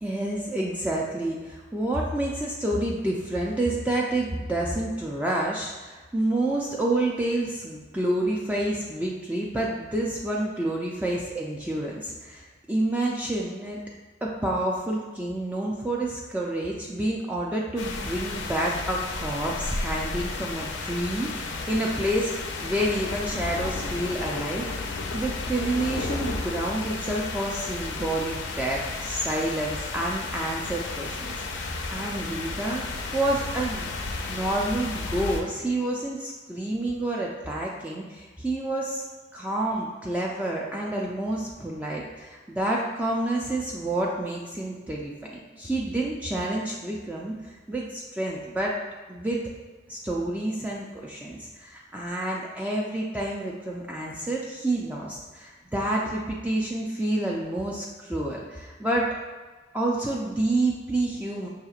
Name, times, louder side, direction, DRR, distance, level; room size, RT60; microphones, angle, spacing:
voice 1, 0.0-13.8 14.2-22.3 22.6-33.9 34.3-39.0 39.3-48.8 49.1-49.4 49.9-59.1 59.7-61.5, right 1 dB, 10° right, -3 dB, 0.3 m, -29 dB
sound 1, 17.8-35.4, left 3 dB, 80° left, 0.5 m, -33 dB
5.7 x 2.8 x 2.4 m, 1.3 s
head